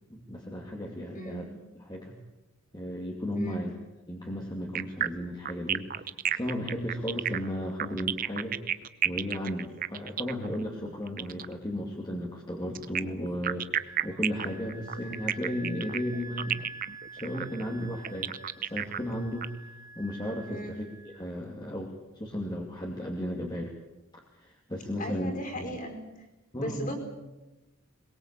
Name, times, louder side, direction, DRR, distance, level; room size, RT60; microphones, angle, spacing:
voice 1, 0.1-1.5 1.7-2.2 2.7-3.7 4.1-8.6 9.0-16.7 17.1-19.6 20.0-23.7 24.3-25.3 25.6-25.7 26.5-27.0, equal, 20° left, -1 dB, 2.6 m, -35 dB
voice 2, 1.1-1.5 3.3-3.7 20.5-20.8 25.0-26.0 26.5-27.0, equal, 35° left, 4 dB, 5.1 m, -37 dB
sound 1, 4.8-11.5 12.8-19.5, right 9 dB, 40° right, 0.8 m, -32 dB
Wind instrument woodwind instrument, 13.8-21.2, right 2 dB, 15° right, 1.1 m, -48 dB
22.0 x 22.0 x 8.3 m, 1.0 s
head